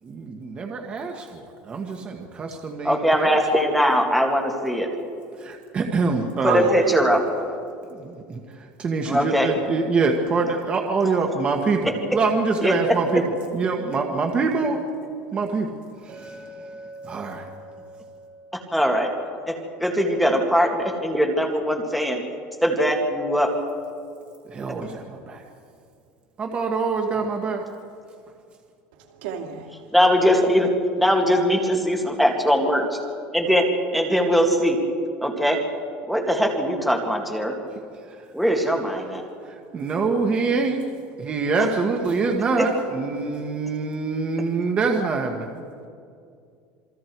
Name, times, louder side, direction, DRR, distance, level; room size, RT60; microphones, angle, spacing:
voice 1, 0.0-3.3 5.3-6.6 7.8-13.3 13.5-14.9 15.3-17.5 24.4-25.4 26.4-27.7 28.3-28.4 37.9-38.3 39.4-40.8 41.2-45.5, right 4 dB, 25° right, 1.6 m, -25 dB
voice 2, 2.8-4.9 6.4-7.2 9.1-9.5 12.6-12.8 18.5-19.1 19.5-22.2 22.6-23.5 29.9-32.9 33.3-34.8 35.2-35.6 36.1-37.6 38.3-39.2 42.6-42.7, equal, ahead, 2.3 m, -21 dB
voice 3, 6.5-7.1 28.9-29.9, right 8 dB, 80° right, 2.8 m, -30 dB
Chink clink, 16.1-20.3, right 1 dB, 40° right, 6.9 m, -44 dB
27.5 x 23.0 x 4.7 m
cardioid pair, 150°, 5 cm